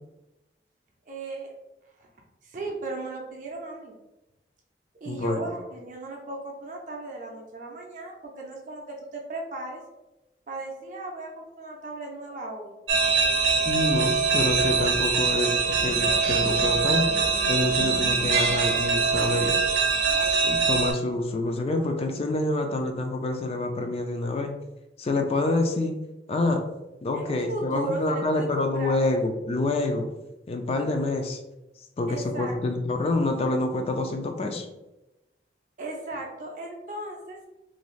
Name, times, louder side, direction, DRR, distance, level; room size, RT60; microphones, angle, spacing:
voice 1, 1.1-1.5 2.0-2.1 2.4-4.0 5.0-9.8 10.5-12.7 27.1-29.1 32.1-32.5 35.8-37.4, right 2 dB, 45° right, 0 dB, 0.5 m, -36 dB
voice 2, 5.1-5.5 13.6-17.1 17.5-19.6 20.4-24.5 25.0-25.9 26.3-26.6 27.0-30.1 30.5-31.4 32.0-34.7, left 2 dB, 35° left, 4 dB, 0.3 m, -27 dB
sound 1, 12.9-20.9, right 5 dB, 90° right, 0.6 m, -23 dB
2.6 x 2.3 x 3.1 m, 0.98 s
head